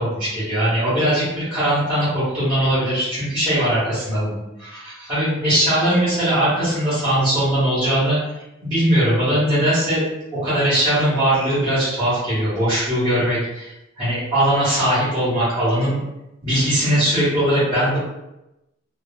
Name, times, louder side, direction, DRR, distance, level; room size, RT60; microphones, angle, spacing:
voice 1, 0.0-8.2 8.6-10.0 10.3-16.0 16.4-18.0, right 1 dB, 20° right, -15 dB, 1.3 m, -20 dB
3.0 x 2.8 x 2.2 m, 0.94 s
head